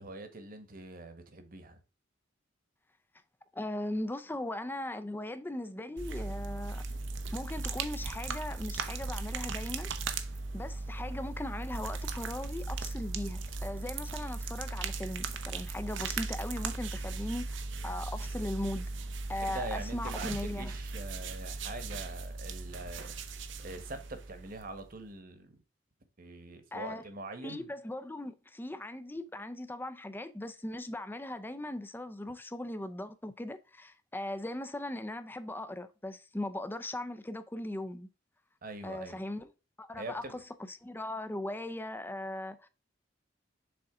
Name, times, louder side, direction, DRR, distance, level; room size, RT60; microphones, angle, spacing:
voice 1, 0.0-1.8 19.5-23.2 23.6-25.5 26.2-27.7 38.6-39.2 40.0-40.4, right 2 dB, 50° right, 1.2 m, -43 dB
voice 2, 3.5-6.8 7.3-9.9 10.5-18.9 19.3-20.7 26.7-27.0 27.4-38.1 38.8-39.5 39.8-40.4 40.7-42.7, left 1 dB, 10° left, 0.5 m, -39 dB
sound 1, 6.0-24.9, right 3 dB, 70° right, 0.8 m, -38 dB
7.0 x 3.8 x 3.6 m
head